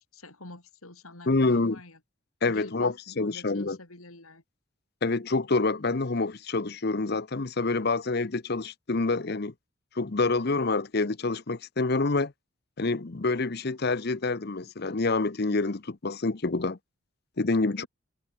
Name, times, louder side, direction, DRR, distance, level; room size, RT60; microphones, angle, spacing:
voice 1, 0.1-2.0 2.5-4.4 17.7-17.9, left 2 dB, 90° left, 5.6 m, -47 dB
voice 2, 1.3-1.8 2.4-3.8 5.0-9.5 9.9-12.3 12.8-16.8 17.4-17.8, left 3 dB, 50° left, 0.8 m, -27 dB
head